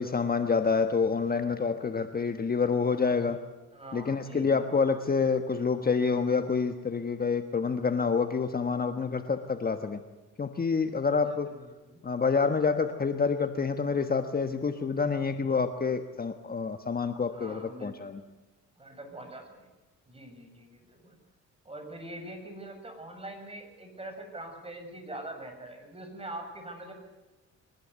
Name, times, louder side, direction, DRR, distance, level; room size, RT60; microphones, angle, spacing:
voice 1, 0.0-3.4 3.9-10.0 10.4-11.5 12.0-18.2, left 5 dB, 30° left, 7 dB, 1.4 m, -27 dB
voice 2, 3.7-4.7 11.1-12.0 17.3-18.0 18.8-19.7 20.1-21.2 21.6-26.9, right 1 dB, 20° right, 5 dB, 7.4 m, -43 dB
23.5 x 20.0 x 8.2 m, 1.1 s
cardioid pair, 90°, 30 cm